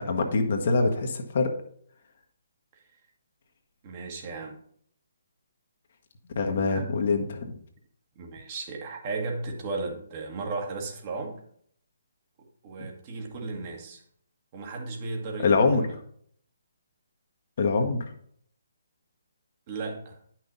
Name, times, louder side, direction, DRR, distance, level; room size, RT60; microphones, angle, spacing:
voice 1, 0.0-1.5 6.3-7.6 15.4-15.8 17.6-18.0, left 4 dB, 45° left, 1.4 m, -24 dB
voice 2, 3.8-4.6 6.7-6.9 8.1-11.4 12.6-14.0 14.5-15.9 19.7-20.2, right 3 dB, 35° right, 1.7 m, -35 dB
10.5 x 6.0 x 4.0 m
figure-of-eight pair, 140°, 0 cm